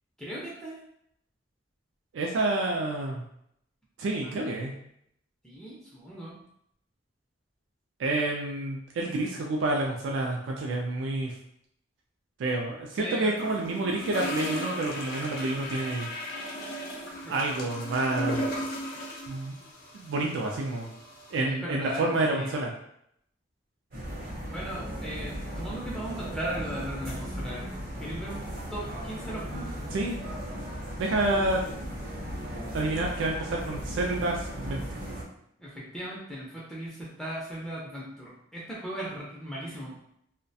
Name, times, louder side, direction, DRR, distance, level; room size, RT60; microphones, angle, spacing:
voice 1, 0.2-0.8 4.2-4.4 5.4-6.4 13.0-13.3 13.7-13.8 17.2-17.3 21.4-22.5 24.5-27.7 28.0-29.7 35.6-40.0, right 1 dB, 5° left, -6 dB, 0.4 m, -38 dB
voice 2, 2.1-3.2 4.0-4.7 8.0-11.3 12.4-16.1 17.3-18.5 19.3-19.6 19.9-20.9 21.3-22.7 29.9-30.2 31.0-31.6 32.7-35.0, right 2 dB, 80° right, 0 dB, 0.3 m, -29 dB
sound 1, 13.4-21.4, equal, 55° left, 0.6 m, -36 dB
sound 2, 23.9-35.2, equal, 50° right, 0.7 m, -36 dB
2.3 x 2.1 x 2.6 m, 0.73 s
head